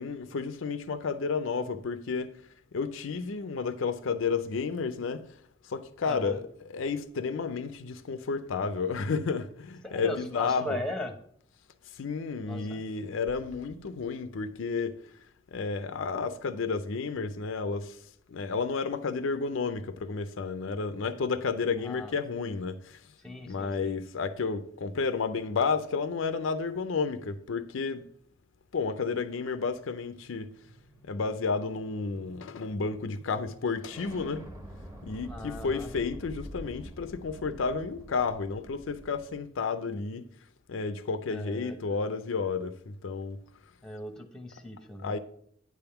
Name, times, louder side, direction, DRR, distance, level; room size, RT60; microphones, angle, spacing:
voice 1, 0.0-2.4 2.7-5.2 5.6-10.8 11.9-15.0 15.5-23.1 23.5-28.0 28.7-30.5 31.0-34.4 35.0-40.2 40.7-43.4 45.0-45.2, left 4 dB, 70° left, 0.5 m, -31 dB
voice 2, 6.1-6.4 9.8-11.2 12.4-12.9 21.8-22.1 23.2-24.0 35.3-35.9 41.3-41.8 43.8-45.1, left 1 dB, 5° left, 0.8 m, -38 dB
sound 1, 29.6-39.4, equal, 15° right, 1.1 m, -47 dB
9.4 x 3.5 x 5.7 m
head